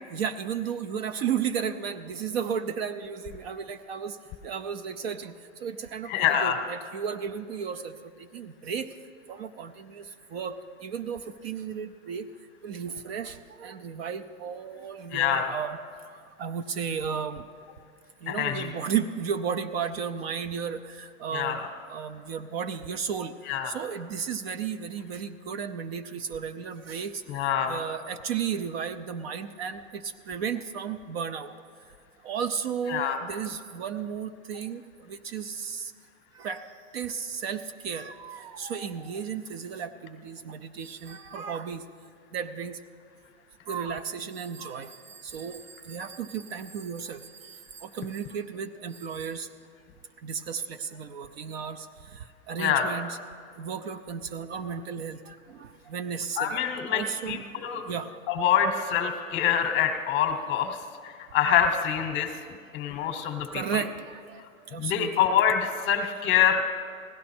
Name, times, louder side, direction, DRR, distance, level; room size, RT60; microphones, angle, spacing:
voice 1, 0.1-4.1 4.4-5.3 5.6-7.9 8.3-8.9 9.3-10.0 10.3-10.5 10.8-12.2 12.6-13.3 13.6-15.8 16.4-17.4 18.2-21.6 21.9-23.3 23.7-27.1 27.6-29.8 30.3-31.5 32.2-34.8 35.2-35.8 36.4-36.6 36.9-41.8 42.3-42.8 43.7-44.9 45.2-45.6 45.9-47.2 47.8-49.5 50.2-51.8 52.5-53.2 53.6-55.3 55.9-56.5 56.9-57.4 57.9-58.1 63.2-63.9 64.7-65.1 65.7-66.1, right 7 dB, 50° right, 10 dB, 0.6 m, -33 dB
voice 2, 6.1-6.6 15.1-15.5 18.3-18.7 21.3-21.7 23.5-23.8 27.3-27.8 32.9-33.2 52.6-52.9 56.4-57.8 58.3-60.8 61.0-62.3 62.7-63.8 64.8-66.6, left 9 dB, 25° left, 7 dB, 0.9 m, -25 dB
16.5 x 11.0 x 4.3 m, 2.2 s
hypercardioid pair, 140°, 41 cm